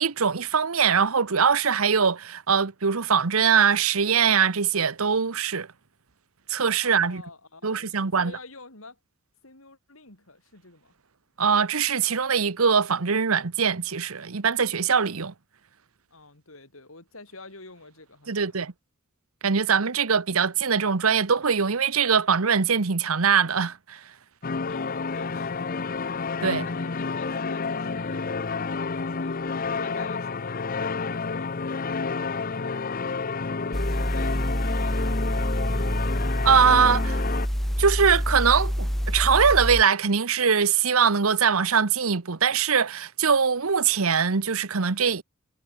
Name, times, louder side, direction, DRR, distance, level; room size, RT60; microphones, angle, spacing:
voice 1, 0.0-5.7 6.5-7.2 7.6-8.3 11.4-15.3 18.3-18.7 19.4-24.1 26.4-26.7 36.4-37.2 37.8-45.2, right 6 dB, 85° right, 1.0 m, -22 dB
voice 2, 6.8-9.0 9.4-10.9 16.1-18.6 24.6-25.9 26.6-28.5 29.0-31.5 32.2-32.9 33.6-36.1, left 2 dB, 75° left, 7.3 m, -47 dB
sound 1, 24.4-37.5, left 4 dB, 45° left, 0.7 m, -30 dB
sound 2, 33.7-39.8, equal, ahead, 0.6 m, -26 dB
head